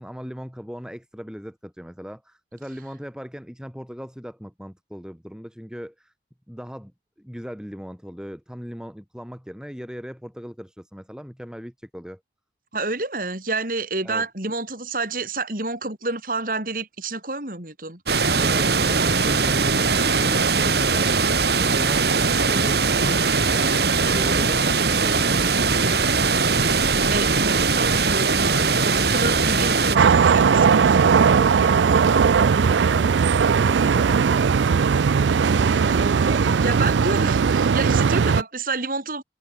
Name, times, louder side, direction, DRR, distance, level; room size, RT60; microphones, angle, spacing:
voice 1, 0.0-6.1 6.5-6.9 7.2-12.2 14.0-14.3 18.4-21.1 21.6-26.1, equal, 5° right, 5.6 m, -38 dB
voice 2, 12.7-18.0 27.1-31.1 35.4-39.2, right 3 dB, 50° right, 5.6 m, -29 dB
sound 1, 18.1-30.0, right 4 dB, 65° right, 2.4 m, -20 dB
sound 2, 29.9-38.4, right 6 dB, 85° right, 0.4 m, -18 dB
head